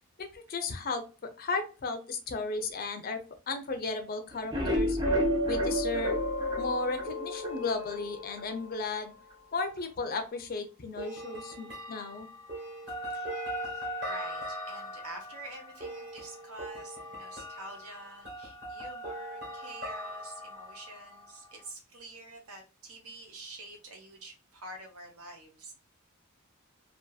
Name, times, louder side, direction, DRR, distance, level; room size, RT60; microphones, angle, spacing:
voice 1, 0.2-3.2 3.5-5.0 5.5-6.2 6.6-9.1 9.5-12.3, left 3 dB, 40° left, 7 dB, 0.5 m, -35 dB
sound 1, 4.3-7.5 7.9-8.0 8.4-8.5 8.8-8.9, left 1 dB, 20° right, 0.5 m, -31 dB
sound 2, 5.0-9.3 11.0-21.5, right 1 dB, 50° right, 1.1 m, -37 dB
voice 2, 13.6-25.7, right 2 dB, 80° right, 2 dB, 1.0 m, -47 dB
2.6 x 2.5 x 2.3 m, 0.31 s
head